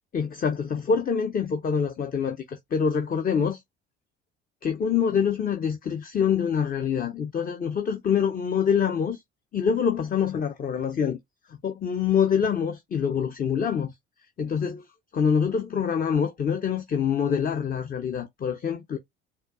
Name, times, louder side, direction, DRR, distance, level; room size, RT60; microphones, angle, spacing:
voice 1, 0.1-3.6 4.6-9.2 9.5-11.2 11.6-13.9 14.4-14.8 15.1-19.0, left 7 dB, 25° left, 0.6 m, -25 dB
4.2 x 2.3 x 2.4 m
figure-of-eight pair, 55°, 33 cm